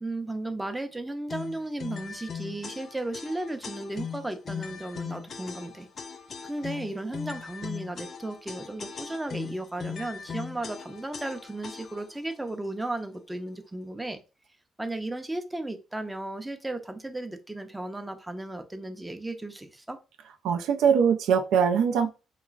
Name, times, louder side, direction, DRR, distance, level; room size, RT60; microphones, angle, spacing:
voice 1, 0.0-5.9 6.4-14.2 14.8-20.0, right 2 dB, 10° right, 0.5 m, -35 dB
sound 1, 1.3-12.2, left 6 dB, 50° left, 0.4 m, -39 dB
voice 2, 20.4-22.1, right 7 dB, 85° right, 0.3 m, -22 dB
2.9 x 2.4 x 2.3 m
cardioid pair, 90°, 0 cm